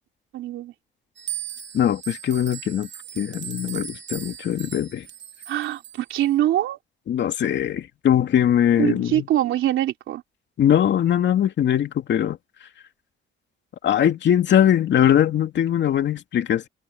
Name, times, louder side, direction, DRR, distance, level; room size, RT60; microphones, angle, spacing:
voice 1, 0.3-0.7 5.5-6.8 8.8-10.2, right 13 dB, 80° right, 3.3 m, -23 dB
sound 1, 1.2-6.2, right 10 dB, 65° right, 3.2 m, -37 dB
voice 2, 1.7-2.9 3.2-5.1 7.1-9.3 10.6-12.4 13.8-16.7, left 10 dB, 65° left, 2.6 m, -21 dB
cardioid pair, 90°, 20 cm